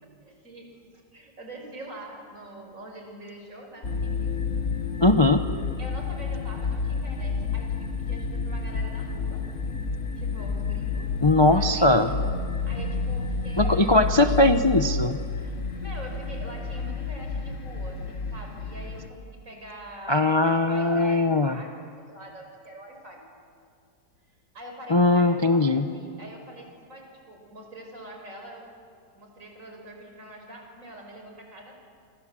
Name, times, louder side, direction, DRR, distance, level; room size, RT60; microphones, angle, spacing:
voice 1, 0.0-4.4 5.8-9.4 10.2-11.1 11.5-12.2 12.6-14.4 15.3-21.7 22.0-23.2 24.5-28.7 29.1-31.8, right 1 dB, 45° right, 2 dB, 5.6 m, -44 dB
sound 1, 3.8-19.1, left 4 dB, 45° left, 1.9 m, -30 dB
voice 2, 5.0-5.4 11.2-12.1 13.6-15.2 20.1-21.6 24.9-25.9, left 2 dB, 30° left, 7 dB, 0.5 m, -20 dB
27.5 x 25.5 x 7.7 m, 2.2 s
omnidirectional pair, 1.9 m